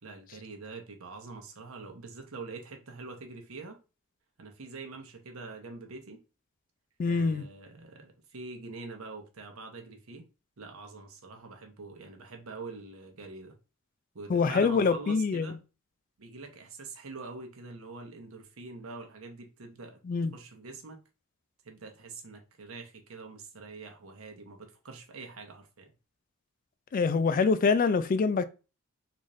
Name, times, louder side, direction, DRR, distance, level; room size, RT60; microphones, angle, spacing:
voice 1, 0.0-3.8 4.4-6.2 7.0-10.3 10.6-13.5 14.1-15.6 16.2-20.0 20.3-21.0 21.6-25.9, right 3 dB, 80° right, 0.9 m, -44 dB
voice 2, 7.0-7.5 14.3-15.5 20.1-20.3 26.9-28.4, left 4 dB, 40° left, 0.3 m, -25 dB
4.0 x 2.5 x 3.1 m
head